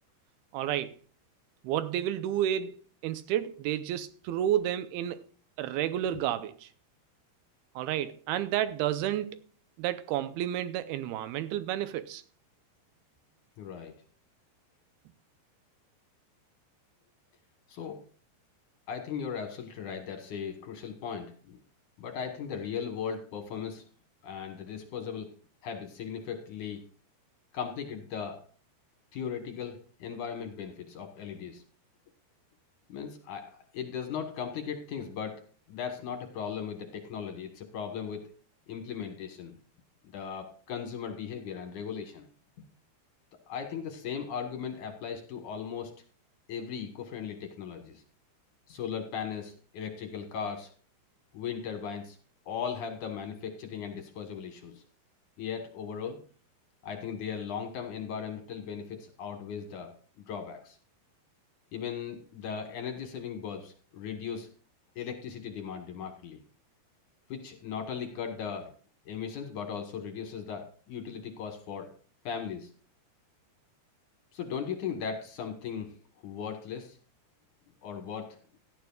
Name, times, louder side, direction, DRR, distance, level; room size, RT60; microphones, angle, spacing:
voice 1, 0.5-0.9 1.6-2.7 3.0-5.2 5.6-6.7 7.8-9.4 9.8-12.2, right 11 dB, 80° right, 2.4 m, -31 dB
voice 2, 13.6-13.9 17.7-18.0 18.9-21.6 22.0-23.8 24.2-25.3 25.6-26.8 27.5-28.4 29.1-31.6 32.9-35.4 35.7-38.3 38.7-39.5 40.1-42.3 43.5-46.0 46.5-48.0 48.7-50.7 51.3-52.2 52.5-54.8 55.4-56.2 56.8-59.9 60.3-60.8 61.7-64.5 65.0-66.4 67.3-68.7 69.1-71.9 72.2-72.7 74.3-75.9 76.2-77.0 77.8-78.4, left 7 dB, 65° left, 2.2 m, -37 dB
17.0 x 12.0 x 2.3 m
omnidirectional pair, 4.6 m